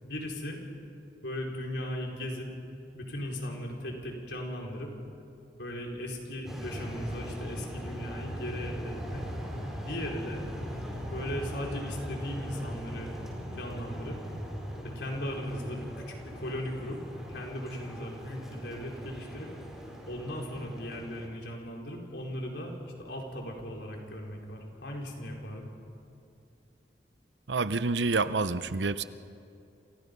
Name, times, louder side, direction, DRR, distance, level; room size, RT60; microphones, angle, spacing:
voice 1, 0.0-0.6 1.2-2.5 2.9-4.9 5.6-9.2 9.8-10.4 11.1-13.1 13.5-14.2 14.9-17.0 17.3-19.5 20.1-22.7 23.0-25.7, left 1 dB, 70° left, 0 dB, 4.7 m, -37 dB
sound 1, 6.5-21.3, equal, 5° right, 4.8 m, -40 dB
voice 2, 27.5-29.0, right 3 dB, 85° right, 13 dB, 0.8 m, -28 dB
29.5 x 28.0 x 5.4 m, 2.6 s
head